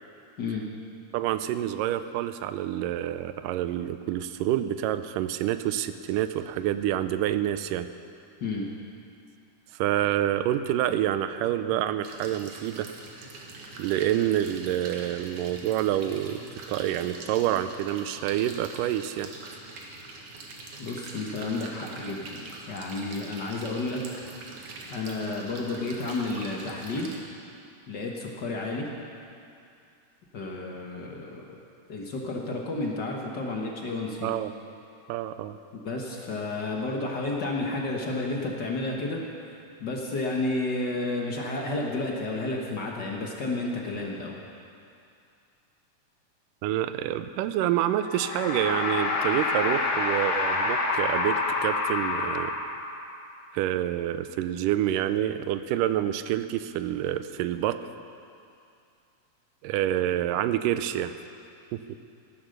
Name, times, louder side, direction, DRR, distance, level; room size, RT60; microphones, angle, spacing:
voice 1, 1.1-7.9 9.7-12.9 13.8-19.3 34.2-34.5 35.1-35.6 46.6-52.6 53.5-57.8 59.6-61.1 61.7-62.0, right 12 dB, 85° right, 11 dB, 2.2 m, -27 dB
sound 1, 12.0-27.2, right 3 dB, 70° right, 2.9 m, -43 dB
voice 2, 20.8-24.0 24.9-27.1 27.9-28.9 30.3-31.4 31.9-34.3 35.8-39.2 39.8-44.4, left 2 dB, 55° left, -1 dB, 1.2 m, -31 dB
sound 2, 48.0-53.1, left 3 dB, 70° left, 2.7 m, -27 dB
16.0 x 11.5 x 6.6 m, 2.5 s
omnidirectional pair, 3.7 m